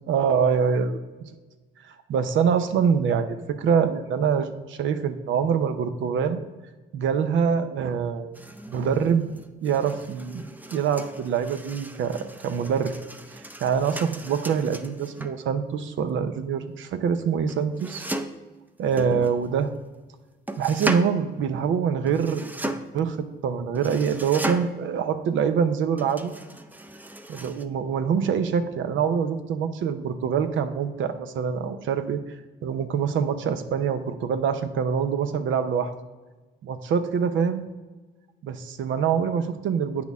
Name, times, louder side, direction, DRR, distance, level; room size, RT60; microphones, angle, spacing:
voice 1, 0.1-1.3 2.1-6.4 6.9-8.4 8.7-9.3 9.6-12.9 13.6-18.0 18.8-19.7 20.6-23.2 23.4-26.3 27.3-32.2 32.6-35.9 36.6-37.7 38.4-40.0, right 7 dB, 75° right, 9 dB, 0.7 m, -25 dB
sound 1, 8.3-15.4 17.5-18.5 18.9-19.9 20.5-21.2 22.1-23.0 23.7-24.9 26.0-27.6, right 1 dB, 10° right, 0.5 m, -36 dB
8.5 x 6.2 x 3.5 m, 1.2 s
cardioid pair, 90°, 20 cm